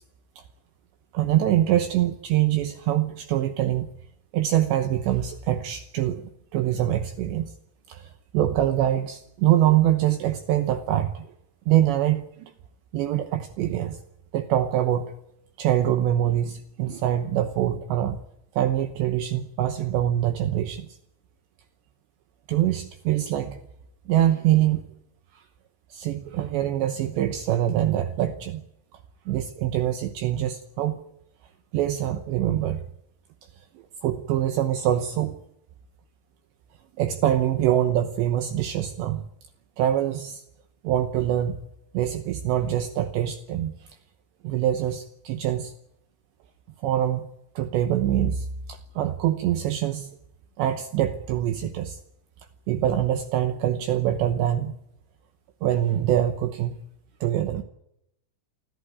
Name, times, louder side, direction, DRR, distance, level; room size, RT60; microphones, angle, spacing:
voice 1, 1.1-3.9 4.3-7.5 7.9-11.3 11.7-12.5 12.9-14.0 14.3-15.2 15.6-18.2 18.5-21.0 22.5-23.6 24.1-24.8 25.3-25.4 25.9-28.6 29.3-31.0 31.7-32.9 33.6-33.7 34.0-35.4 37.0-39.2 39.8-40.4 40.8-41.6 41.9-43.7 44.4-45.7 46.8-47.3 47.6-50.2 50.6-52.0 52.7-54.8 55.6-56.8 57.2-57.6, right 12 dB, 75° right, 8 dB, 2.9 m, -24 dB
28.5 x 11.5 x 9.6 m, 0.79 s
omnidirectional pair, 5.9 m